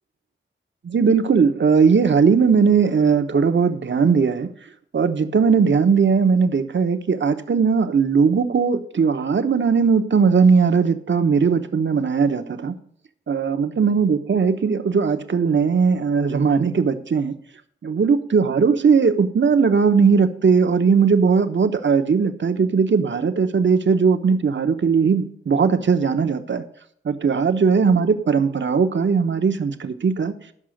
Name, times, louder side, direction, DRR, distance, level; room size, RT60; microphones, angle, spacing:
voice 1, 0.8-4.5 4.9-12.8 13.3-17.3 17.8-26.6 27.0-30.3, right 5 dB, 60° right, 8 dB, 1.0 m, -18 dB
12.0 x 5.6 x 6.4 m, 0.67 s
cardioid pair, 60°, 21 cm